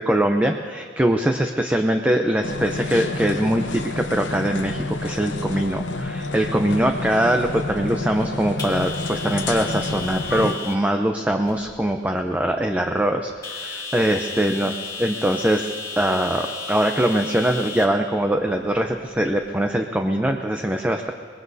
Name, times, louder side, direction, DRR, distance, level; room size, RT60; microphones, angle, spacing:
voice 1, 0.0-14.7 15.0-21.1, right 1 dB, 10° right, 4 dB, 0.6 m, -22 dB
sound 1, 2.4-10.5, left 2 dB, 90° left, 0.8 m, -29 dB
sound 2, 3.7-19.7, left 4 dB, 20° left, 2.0 m, -37 dB
23.5 x 20.5 x 2.8 m, 2.1 s
head